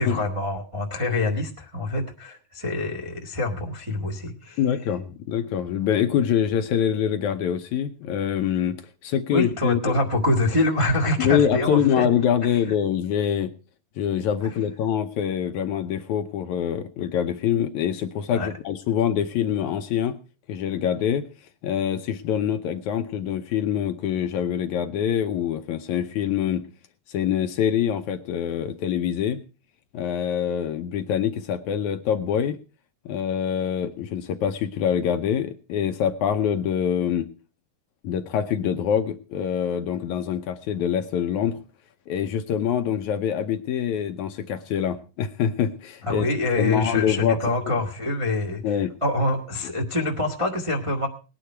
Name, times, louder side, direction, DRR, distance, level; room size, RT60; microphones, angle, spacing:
voice 1, 0.0-4.6 9.3-12.1 12.4-12.7 14.4-14.5 18.3-18.5 46.1-51.1, left 2 dB, 20° right, -1 dB, 0.8 m, -25 dB
voice 2, 4.6-8.8 9.0-10.0 11.2-13.5 14.0-20.2 20.5-21.3 21.6-26.7 27.1-29.4 29.9-32.6 33.1-37.3 38.0-41.6 42.1-46.3 46.6-47.4 48.6-48.9, left 9 dB, 75° left, 7 dB, 2.0 m, -25 dB
19.0 x 10.0 x 4.5 m, 0.35 s
omnidirectional pair, 3.9 m